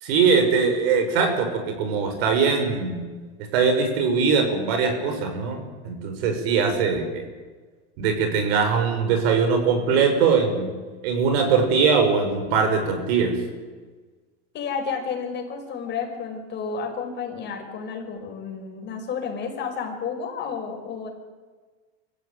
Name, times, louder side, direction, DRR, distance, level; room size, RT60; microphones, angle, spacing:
voice 1, 0.0-3.0 3.5-7.2 8.0-10.7 11.0-13.4, right 5 dB, 80° right, 6 dB, 5.8 m, -21 dB
voice 2, 14.5-21.1, left 6 dB, 35° left, 2 dB, 5.9 m, -31 dB
25.0 x 15.0 x 9.4 m, 1.4 s
supercardioid pair, 145°, 30 cm